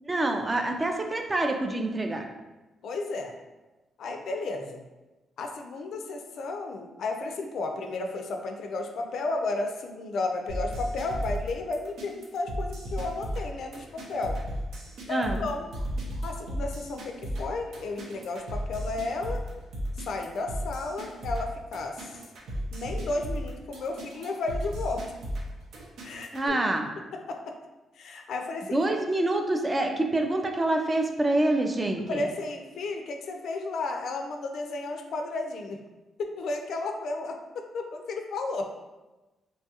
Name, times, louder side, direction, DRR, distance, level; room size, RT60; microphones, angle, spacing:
voice 1, 0.0-2.2 15.1-15.4 26.3-26.9 28.7-32.3, right 2 dB, 20° right, 3 dB, 0.3 m, -26 dB
voice 2, 2.8-3.3 4.0-4.8 5.4-14.4 15.1-15.7 16.2-19.4 20.0-22.1 22.7-25.0 26.0-26.3 27.3-27.4 28.0-28.8 32.1-35.8 36.2-38.7, left 3 dB, 70° left, 4 dB, 0.3 m, -33 dB
sound 1, 10.5-26.5, equal, 80° right, 0.6 m, -35 dB
3.0 x 2.3 x 2.8 m, 1.1 s
cardioid pair, 100°, 0 cm